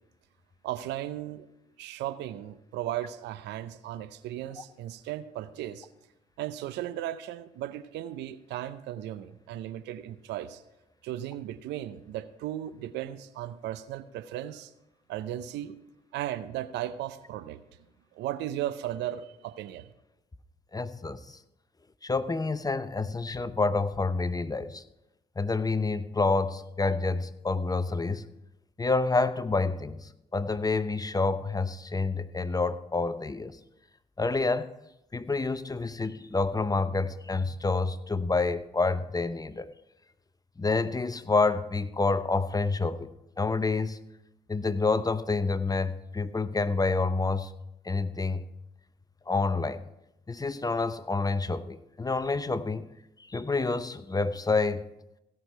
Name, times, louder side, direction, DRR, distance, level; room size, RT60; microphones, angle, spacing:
voice 1, 0.6-1.5 1.8-5.9 6.4-10.6 11.0-14.7 15.1-15.8 16.1-17.6 18.1-19.9, right 12 dB, 75° right, 14 dB, 0.6 m, -36 dB
voice 2, 20.7-21.4 22.0-24.8 25.4-28.3 28.8-33.6 34.2-34.7 35.1-39.7 40.6-43.1 43.4-44.0 44.5-47.5 47.8-48.4 49.3-49.8 50.3-52.9 53.3-54.8, left 3 dB, 20° left, 13 dB, 0.8 m, -28 dB
16.5 x 6.3 x 4.6 m, 0.87 s
hypercardioid pair, 50°, 18 cm